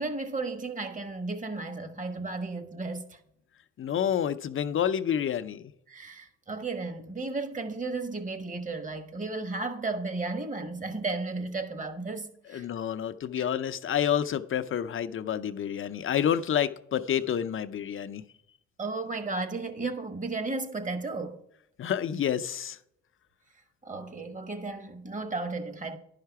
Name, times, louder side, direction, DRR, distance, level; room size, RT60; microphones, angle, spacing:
voice 1, 0.0-3.2 5.9-12.8 13.4-13.5 18.8-21.4 23.8-26.0, right 3 dB, 25° right, 1.3 m, -34 dB
voice 2, 3.8-5.7 12.5-18.2 21.8-22.8, left 9 dB, 45° left, 0.5 m, -29 dB
11.0 x 5.7 x 4.7 m
cardioid pair, 90°, 30 cm